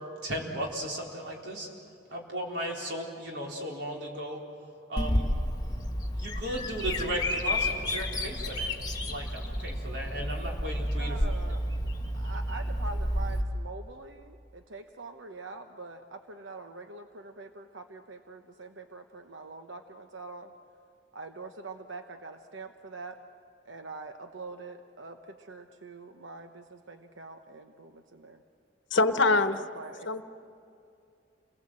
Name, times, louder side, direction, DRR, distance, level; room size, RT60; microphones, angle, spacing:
voice 1, 0.2-1.7 2.1-4.4 4.9-5.3 6.1-8.7 9.1-11.2, right 1 dB, 65° right, -1 dB, 4.2 m, -36 dB
Bird vocalization bird call bird song, 5.0-13.4, left 1 dB, 20° left, 1.8 m, -31 dB
voice 2, 11.0-11.6 12.1-20.5 21.1-23.2 23.6-28.4 29.1-30.1, right 3 dB, 85° right, 6 dB, 1.0 m, -44 dB
voice 3, 28.9-29.6 30.1-30.2, left 3 dB, 80° left, 10 dB, 1.0 m, -23 dB
29.0 x 20.0 x 7.6 m, 2.6 s
head